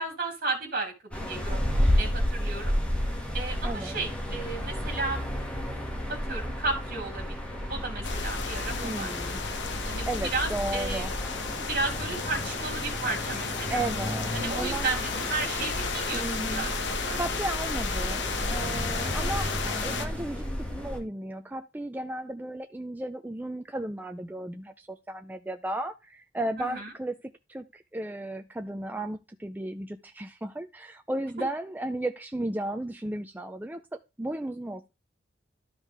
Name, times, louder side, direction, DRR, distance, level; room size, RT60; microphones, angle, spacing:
voice 1, 0.0-1.6 2.0-2.7 3.3-5.2 6.1-7.4 7.7-9.2 9.9-11.1 11.6-13.9 14.3-17.2 26.6-26.9, right 3 dB, 50° right, 2.9 m, -33 dB
sound 1, 1.1-21.0, left 1 dB, 5° left, 1.9 m, -32 dB
voice 2, 3.6-4.0 8.8-9.4 9.8-11.1 13.7-14.9 16.1-16.7 17.1-27.2 27.5-34.9, right 1 dB, 10° right, 0.4 m, -35 dB
sound 2, 8.0-20.1, left 4 dB, 65° left, 1.0 m, -33 dB
12.5 x 5.1 x 3.4 m
head